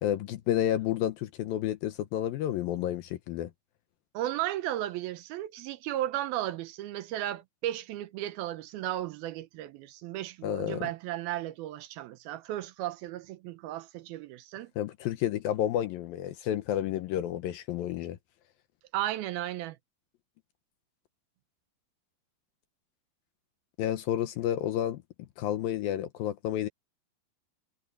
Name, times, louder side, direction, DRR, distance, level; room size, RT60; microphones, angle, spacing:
voice 1, 0.0-3.5 10.4-10.9 14.8-18.2 23.8-25.0 25.4-26.7, left 11 dB, 75° left, 2.5 m, -30 dB
voice 2, 4.1-14.7 18.9-19.8, right 13 dB, 75° right, 2.6 m, -35 dB
omnidirectional pair, 4.6 m